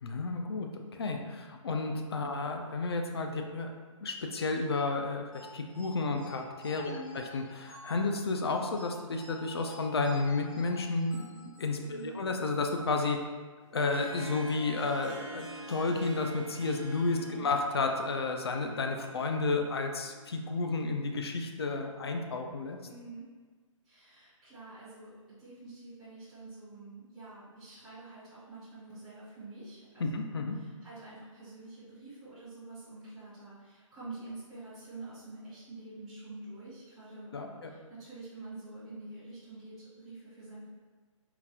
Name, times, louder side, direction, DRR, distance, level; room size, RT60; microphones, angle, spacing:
voice 1, 0.0-3.7 4.0-11.2 11.6-13.2 13.7-22.8 30.0-30.6 37.3-37.7, left 3 dB, 50° left, 4 dB, 0.4 m, -32 dB
sound 1, 5.3-12.2, left 4 dB, 75° left, 1.3 m, -51 dB
voice 2, 6.8-7.2 11.8-12.2 17.1-17.5 22.8-23.3 23.8-30.2 30.6-40.7, right 2 dB, ahead, -16 dB, 0.6 m, -47 dB
Harp, 13.6-21.3, right 2 dB, 55° right, 0.7 m, -47 dB
3.8 x 2.3 x 2.8 m, 1.4 s
hypercardioid pair, 175°, 17 cm